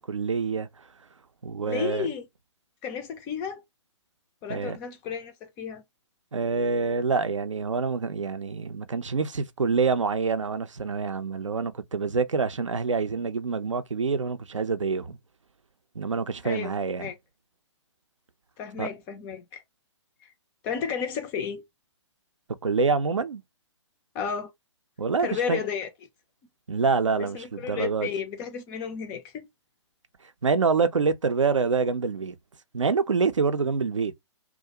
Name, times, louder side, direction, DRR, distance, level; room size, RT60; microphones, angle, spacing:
voice 1, 0.1-0.7 1.4-2.1 4.5-4.8 6.3-15.2 16.0-17.1 18.8-18.9 22.6-23.4 25.0-25.6 26.7-28.1 30.4-32.4 32.7-34.1, right 5 dB, 75° right, 0.5 m, -26 dB
voice 2, 1.7-2.3 2.8-3.6 4.4-5.8 16.4-16.7 17.0-17.2 18.6-19.6 20.2-20.3 20.6-21.6 24.1-24.5 25.2-25.9 27.2-29.5, left 7 dB, 15° left, 0.3 m, -32 dB
2.4 x 2.0 x 2.8 m
figure-of-eight pair, 125°, 16 cm